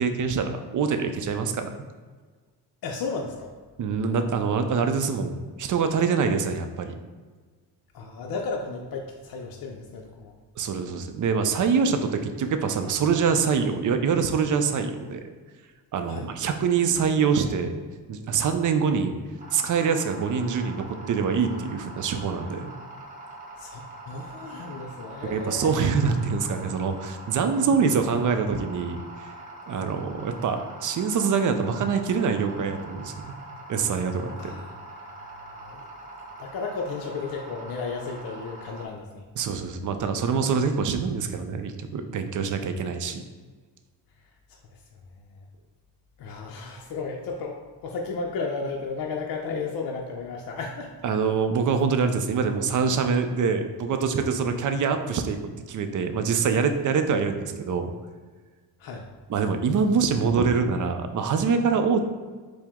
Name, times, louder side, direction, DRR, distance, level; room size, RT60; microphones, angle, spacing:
voice 1, 0.0-1.7 3.8-6.9 10.6-15.2 15.9-17.7 18.1-19.1 19.5-22.7 25.2-29.3 29.7-33.3 33.7-34.5 39.4-43.2 51.0-55.4 55.7-57.9 59.3-62.0, right 5 dB, 50° right, 7 dB, 0.5 m, -25 dB
voice 2, 2.8-3.5 7.9-10.3 16.1-16.3 23.6-25.7 34.4-34.7 35.5-35.8 36.4-39.2 46.2-50.9 54.6-54.7 58.8-59.1, left 4 dB, 60° left, 1 dB, 0.5 m, -34 dB
sound 1, 19.4-38.9, right 2 dB, 20° right, 1.0 m, -43 dB
4.6 x 2.1 x 3.5 m, 1.4 s
cardioid pair, 80°, 41 cm